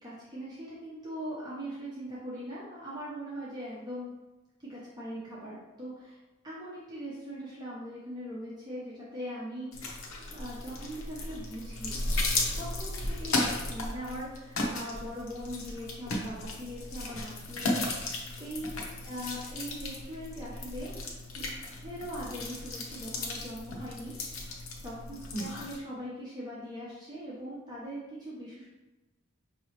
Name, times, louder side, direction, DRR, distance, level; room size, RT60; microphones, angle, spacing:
voice 1, 0.0-4.1 4.6-6.2 6.4-9.7 10.3-12.0 12.6-17.8 18.4-21.0 21.3-24.5 24.8-28.7, equal, 20° right, -8 dB, 0.8 m, -41 dB
sound 1, 9.7-25.8, left 2 dB, 80° left, 0.7 m, -35 dB
5.3 x 2.8 x 3.0 m, 1.1 s
head